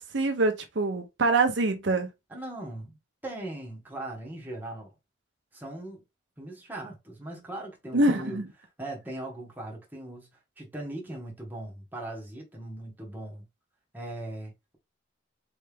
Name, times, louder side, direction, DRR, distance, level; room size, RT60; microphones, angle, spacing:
voice 1, 0.0-2.1 7.9-8.5, right 2 dB, 65° right, 0.7 m, -25 dB
voice 2, 2.3-3.0 3.2-4.9 5.5-6.0 6.4-10.3 10.6-13.4 13.9-14.8, right 1 dB, 10° right, 1.4 m, -39 dB
3.9 x 3.3 x 3.5 m
head